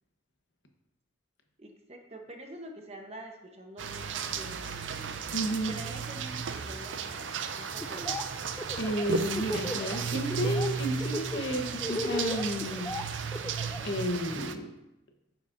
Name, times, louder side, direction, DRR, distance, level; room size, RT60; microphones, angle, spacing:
voice 1, 1.6-5.0 5.5-8.3, right 1 dB, 35° right, 3 dB, 1.0 m, -46 dB
sound 1, 3.8-14.5, right 5 dB, 85° right, 0.5 m, -34 dB
voice 2, 5.3-5.7 8.8-12.9 13.8-14.7, equal, 70° left, 4 dB, 1.1 m, -32 dB
Laughter, 7.8-8.2 8.5-10.0 10.3-10.7 11.0-13.8, left 1 dB, 15° left, 0.4 m, -35 dB
9.6 x 7.3 x 2.6 m, 0.92 s
head